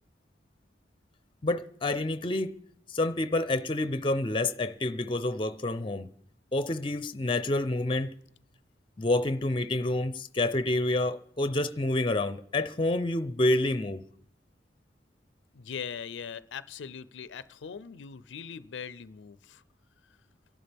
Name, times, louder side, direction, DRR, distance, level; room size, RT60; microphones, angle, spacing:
voice 1, 1.4-2.5 2.9-6.1 6.5-8.1 9.0-14.0, left 2 dB, 30° left, 0.6 m, -28 dB
voice 2, 15.5-19.6, left 7 dB, 90° left, 0.4 m, -41 dB
28.5 x 11.5 x 3.4 m
head